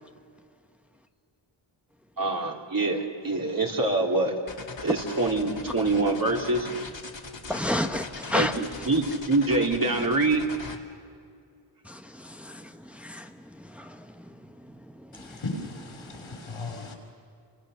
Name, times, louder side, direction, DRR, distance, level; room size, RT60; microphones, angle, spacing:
voice 1, 2.2-4.3 4.8-6.7 8.3-10.4, right 2 dB, 45° right, 3.3 m, -25 dB
sound 1, 4.5-10.8, left 3 dB, 65° left, 2.6 m, -39 dB
voice 2, 7.5-8.5 11.9-13.3 13.7-14.0, left 1 dB, 5° right, 1.2 m, -30 dB
voice 3, 15.1-16.9, left 2 dB, 90° left, 5.9 m, -37 dB
29.0 x 25.0 x 6.5 m
wide cardioid pair, 65°, 48 cm